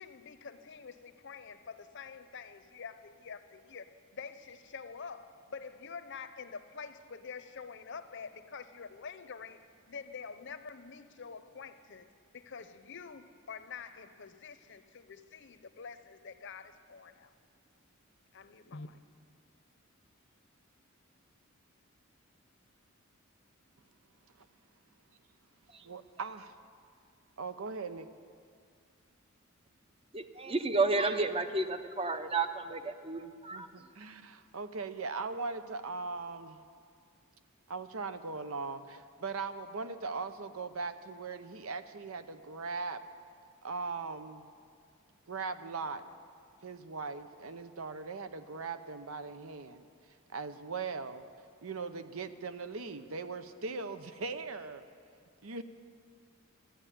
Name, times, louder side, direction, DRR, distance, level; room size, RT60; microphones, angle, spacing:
voice 1, 0.0-12.1 12.3-17.3 18.3-19.0, left 5 dB, 60° left, 0.7 m, -47 dB
voice 2, 25.8-26.5 27.4-28.1 33.5-36.6 37.7-43.0 43.6-44.5 45.3-46.0 46.6-49.9 50.3-51.2 51.6-54.8 55.4-55.6, right 4 dB, 85° right, 0.7 m, -39 dB
voice 3, 30.1-33.7, right 3 dB, 25° right, 0.7 m, -31 dB
14.0 x 8.9 x 10.0 m
head